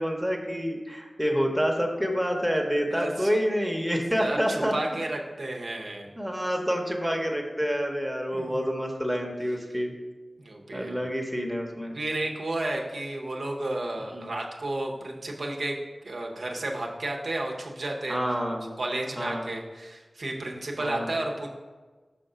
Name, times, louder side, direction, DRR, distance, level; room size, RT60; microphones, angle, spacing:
voice 1, 0.0-4.7 6.2-9.9 10.7-12.0 14.1-14.3 18.1-18.7 19.2-19.5 20.8-21.1, equal, 5° right, 1 dB, 0.8 m, -28 dB
voice 2, 2.9-3.3 4.2-6.1 8.3-8.7 10.4-11.0 11.9-15.8 16.0-18.2 18.8-21.5, right 2 dB, 70° right, 0 dB, 0.7 m, -32 dB
5.7 x 3.7 x 5.5 m, 1.3 s
wide cardioid pair, 90°, 0 cm